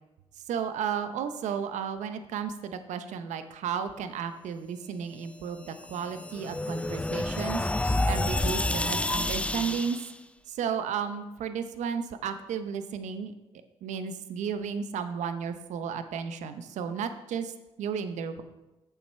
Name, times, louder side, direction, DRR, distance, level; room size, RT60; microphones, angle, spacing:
voice 1, 0.5-7.6 8.1-10.0 10.5-13.3 13.8-18.4, right 7 dB, 75° right, 10 dB, 0.7 m, -33 dB
sound 1, 5.6-10.1, left 2 dB, 10° left, 0.4 m, -29 dB
Bell, 7.0-8.7 10.4-10.7, equal, 40° right, 3.1 m, -59 dB
7.2 x 5.8 x 5.5 m, 1.0 s
supercardioid pair, 55°, 12 cm